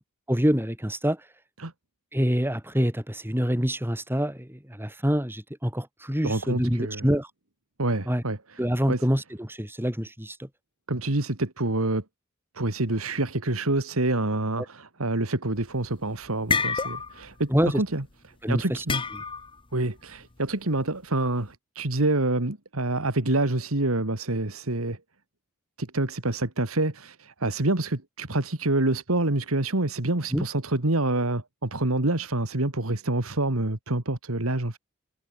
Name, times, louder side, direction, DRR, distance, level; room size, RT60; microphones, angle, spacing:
voice 1, 0.3-1.2 2.1-7.3 8.1-8.2 8.6-10.5 17.5-17.8 18.4-18.8 30.3-30.4, equal, 10° right, 4.5 m, -26 dB
voice 2, 6.2-7.1 7.8-8.6 8.9-9.1 10.9-12.0 12.5-18.0 18.5-19.0 19.7-25.0 25.8-34.8, right 2 dB, 80° right, 2.3 m, -27 dB
sound 1, 15.6-15.9 16.2-17.3 17.6-17.9 18.9-19.6, left 5 dB, 25° left, 1.0 m, -28 dB
head